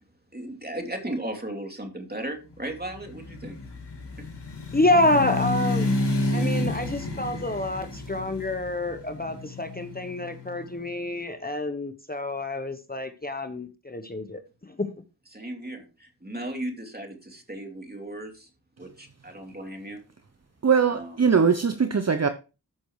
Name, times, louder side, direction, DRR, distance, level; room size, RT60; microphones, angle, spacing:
voice 1, 0.3-3.6 4.2-4.3 15.3-18.5 18.8-20.0 20.9-21.3, right 1 dB, 25° right, 2.9 m, -36 dB
sound 1, 2.8-10.8, left 2 dB, 90° left, 2.2 m, -30 dB
voice 2, 4.7-5.9 6.3-14.4 14.8-14.9, left 1 dB, 20° left, 1.0 m, -27 dB
voice 3, 20.6-22.3, right 6 dB, 40° right, 0.8 m, -21 dB
13.5 x 6.1 x 3.2 m
cardioid pair, 40°, 40 cm